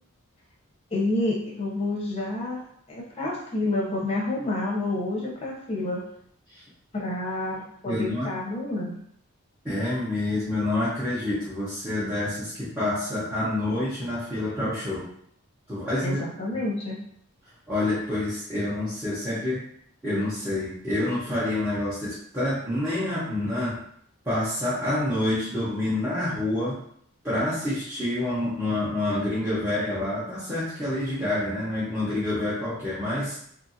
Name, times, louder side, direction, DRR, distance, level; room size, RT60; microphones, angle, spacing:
voice 1, 0.9-6.0 6.9-8.9 16.0-17.0, left 2 dB, 25° left, -3 dB, 0.7 m, -29 dB
voice 2, 7.8-8.3 9.6-15.1 15.7-16.2 16.5-16.6 17.7-19.6 20.0-23.8 24.2-26.8 27.2-33.4, left 1 dB, 10° right, -12 dB, 0.7 m, -27 dB
2.8 x 2.5 x 2.6 m, 0.66 s
head